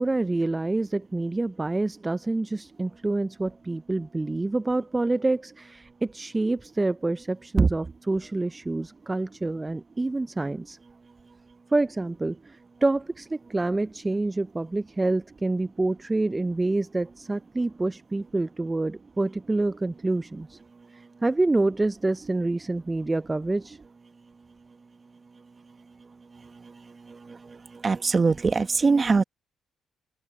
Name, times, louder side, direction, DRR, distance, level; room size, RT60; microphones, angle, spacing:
voice 1, 0.0-10.8 11.7-20.6 20.9-23.8, right 2 dB, 20° right, 0.5 m, -27 dB
voice 2, 27.8-29.2, right 4 dB, 35° right, 1.5 m, -22 dB
open air
supercardioid pair, 65°, 0 cm